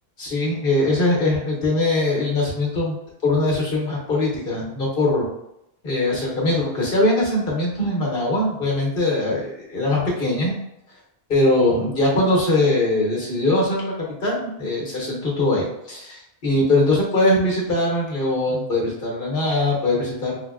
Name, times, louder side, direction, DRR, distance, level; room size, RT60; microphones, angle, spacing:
voice 1, 0.2-3.0 3.2-5.3 5.8-10.5 11.3-20.4, left 2 dB, 60° left, -3 dB, 1.3 m, -21 dB
5.5 x 2.2 x 2.4 m, 0.83 s
omnidirectional pair, 1.0 m